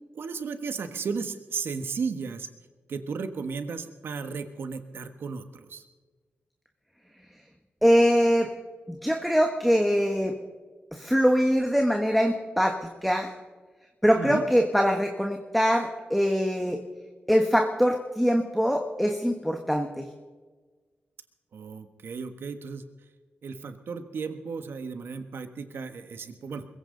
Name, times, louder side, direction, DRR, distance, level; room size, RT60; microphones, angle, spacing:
voice 1, 0.1-2.5 2.9-5.8 14.1-14.4 21.5-22.8 23.4-26.7, right 5 dB, 70° right, 9 dB, 1.4 m, -34 dB
voice 2, 7.8-8.5 8.9-10.3 10.9-13.3 14.0-16.8 17.3-20.0, equal, ahead, 3 dB, 1.3 m, -23 dB
22.5 x 15.5 x 3.9 m, 1.4 s
wide cardioid pair, 95°, 4 cm